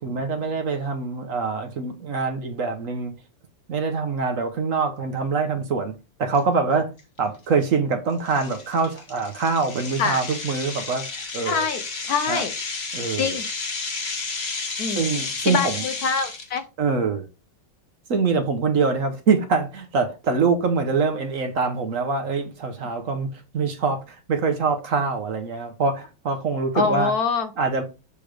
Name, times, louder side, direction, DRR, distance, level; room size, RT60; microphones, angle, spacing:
voice 1, 0.0-3.1 3.7-6.9 7.2-11.0 11.3-11.7 12.3-12.4 12.9-13.4 14.9-15.8 16.8-17.2 18.1-27.1 27.6-27.8, right 4 dB, 55° right, 1.0 m, -24 dB
sound 1, 6.3-6.4 7.0-7.2 7.6-7.7 8.3-16.6, left 4 dB, 40° left, 1.2 m, -32 dB
voice 2, 11.5-11.8 12.1-12.5 13.2-13.4 14.8-15.1 15.5-16.6 26.7-27.5, left 5 dB, 65° left, 1.0 m, -24 dB
6.9 x 3.4 x 5.0 m
omnidirectional pair, 2.1 m